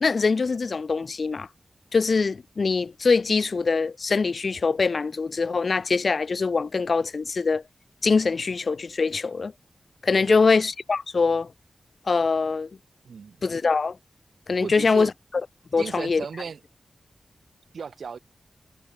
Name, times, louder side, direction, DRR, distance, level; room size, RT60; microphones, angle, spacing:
voice 1, 0.0-1.5 1.9-7.6 8.0-9.5 10.0-11.5 12.1-12.7 13.4-14.0 14.5-15.1 15.7-16.2, left 4 dB, 55° left, 1.1 m, -23 dB
voice 2, 10.2-10.5 13.0-13.4 14.6-15.1 15.8-16.6 17.7-18.2, right 6 dB, 85° right, 7.2 m, -35 dB
wide cardioid pair, 130°, 0 cm